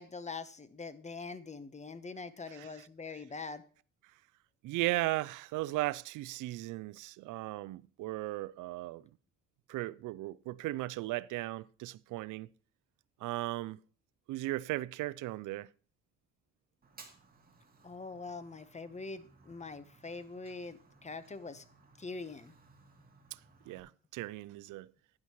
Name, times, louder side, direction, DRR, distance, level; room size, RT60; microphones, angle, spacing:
voice 1, 0.0-3.6 17.8-21.6 22.0-22.5, left 4 dB, 25° left, 1.0 m, -43 dB
voice 2, 4.6-9.0 9.7-12.5 13.2-13.8 14.3-15.7 23.3-23.4 23.7-24.9, right 18 dB, 85° right, 0.5 m, -36 dB
Fire, 16.8-23.8, right 4 dB, 30° right, 2.3 m, -60 dB
12.0 x 9.7 x 3.0 m
cardioid pair, 90°, 30 cm